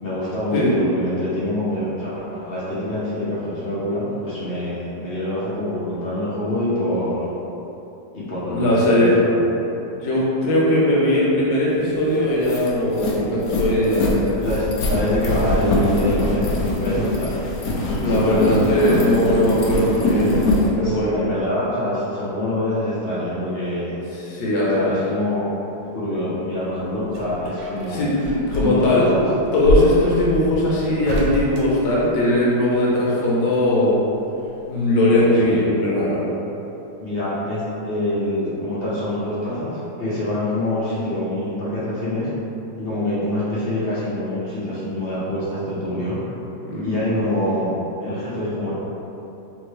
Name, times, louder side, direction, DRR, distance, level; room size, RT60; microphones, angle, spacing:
voice 1, 0.0-7.3 8.1-9.4 14.4-17.3 18.0-19.0 20.7-24.0 24.7-25.5 25.8-28.0 28.5-29.3 35.0-35.6 37.0-42.3 42.8-46.4 46.8-48.7, left 1 dB, 45° left, -9 dB, 0.8 m, -25 dB
voice 2, 8.5-9.1 9.9-14.3 17.8-20.3 20.8-21.1 24.2-24.9 27.9-29.1 29.5-34.0 34.7-36.3 46.6-46.9, left 1 dB, 85° left, -6 dB, 1.6 m, -19 dB
sound 1, 11.8-11.9 12.2-20.7, left 2 dB, 70° left, 0.9 m, -22 dB
sound 2, 26.6-32.6 34.0-34.9 35.1-35.2, left 1 dB, 70° right, 1.0 m, -27 dB
3.6 x 3.4 x 3.2 m, 2.9 s
omnidirectional pair, 2.0 m